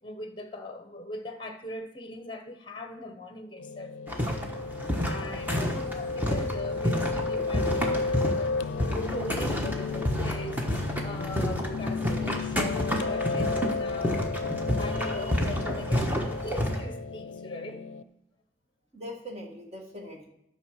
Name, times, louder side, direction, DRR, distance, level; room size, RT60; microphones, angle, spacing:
voice 1, 0.0-3.9 5.1-10.6 11.0-14.2 14.8-17.8, left 1 dB, 25° left, 0.9 m, -40 dB
Piano, 3.6-18.0, left 4 dB, 75° left, 0.4 m, -33 dB
sound 1, 4.1-16.8, equal, 10° right, 1.1 m, -30 dB
voice 2, 14.7-15.3 18.9-20.3, left 1 dB, 35° right, 1.7 m, -42 dB
10.5 x 5.6 x 6.3 m
head